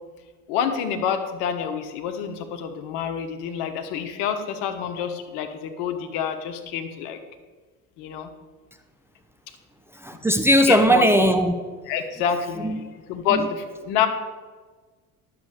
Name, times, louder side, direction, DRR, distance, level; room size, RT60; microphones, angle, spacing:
voice 1, 0.5-7.2 8.0-8.3 10.7-11.1 11.9-14.1, left 8 dB, 60° left, 7 dB, 1.2 m, -27 dB
voice 2, 10.0-11.5, equal, 5° right, 6 dB, 0.8 m, -18 dB
11.0 x 6.9 x 5.0 m, 1.4 s
figure-of-eight pair, 65°, 44 cm